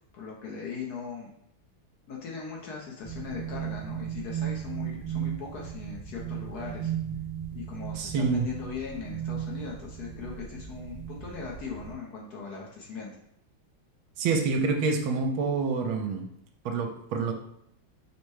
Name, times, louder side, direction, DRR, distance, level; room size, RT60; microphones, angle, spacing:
voice 1, 0.1-1.3 2.1-6.9 7.5-13.1, left 5 dB, 60° left, -2 dB, 1.1 m, -39 dB
sound 1, 3.0-11.9, right 9 dB, 55° right, 1.0 m, -36 dB
voice 2, 7.9-8.5 14.2-16.2 16.6-17.3, right 4 dB, 85° right, 4 dB, 1.5 m, -27 dB
5.3 x 2.2 x 4.7 m, 0.74 s
omnidirectional pair, 2.3 m